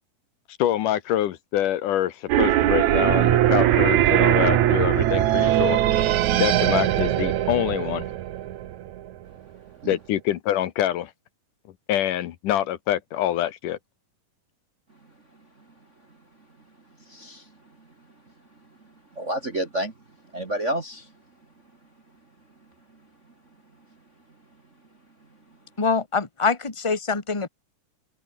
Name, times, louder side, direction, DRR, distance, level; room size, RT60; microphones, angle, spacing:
voice 1, 0.6-5.8 6.3-8.1 9.9-11.1 11.9-13.8, left 12 dB, 75° left, 2.6 m, -25 dB
sound 1, 2.3-9.1, right 13 dB, 65° right, 2.3 m, -21 dB
voice 2, 17.1-17.4 19.1-19.9 20.3-21.1, right 1 dB, 35° right, 1.2 m, -29 dB
voice 3, 25.8-27.5, left 4 dB, 10° left, 1.5 m, -24 dB
omnidirectional pair, 4.0 m